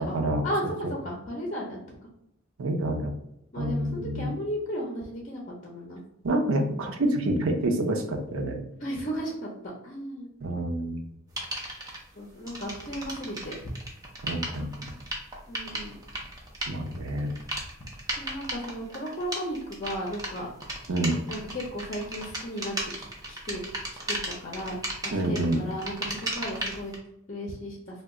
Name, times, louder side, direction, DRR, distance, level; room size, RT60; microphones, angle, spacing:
voice 1, 0.0-0.6 0.9-1.8 3.5-6.0 8.8-9.5 9.8-10.3 12.2-13.7 15.5-16.0 18.2-20.5 21.3-22.8 23.3-23.6 24.1-24.8 25.0-26.9 27.3-27.8, equal, 40° left, -1 dB, 0.5 m, -35 dB
voice 2, 2.6-3.1 3.6-4.3 6.2-8.6 10.4-11.0 14.2-14.9 16.7-17.3 20.9-21.2 25.1-25.6, right 1 dB, 80° right, 3 dB, 0.6 m, -27 dB
sound 1, 11.4-12.0 12.4-27.0, right 1 dB, 15° right, 0.5 m, -35 dB
2.9 x 2.2 x 3.6 m, 0.80 s
head